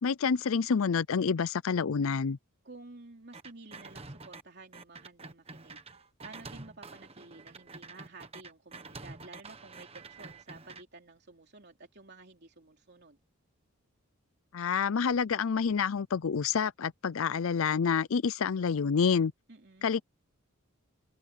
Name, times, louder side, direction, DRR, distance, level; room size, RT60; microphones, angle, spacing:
voice 1, 0.0-2.4 14.5-19.3 19.8-20.0, left 6 dB, 70° left, 0.5 m, -28 dB
voice 2, 2.6-5.8 6.2-13.2 19.5-19.9, right 3 dB, 50° right, 3.3 m, -52 dB
sound 1, 3.3-4.4 4.7-10.8, right 3 dB, 30° right, 1.2 m, -47 dB
head